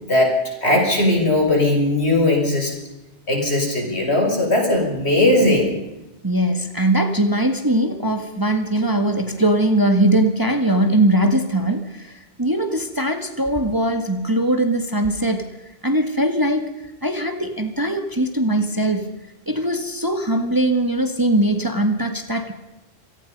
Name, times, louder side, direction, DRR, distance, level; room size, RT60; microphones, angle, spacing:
voice 1, 0.0-2.7 3.3-5.8, left 1 dB, 60° left, 2 dB, 6.5 m, -18 dB
voice 2, 6.2-15.5 15.8-16.7 17.0-19.1 19.5-22.5, right 1 dB, 15° right, 6 dB, 1.8 m, -20 dB
26.0 x 18.5 x 5.5 m, 0.97 s
omnidirectional pair, 1.2 m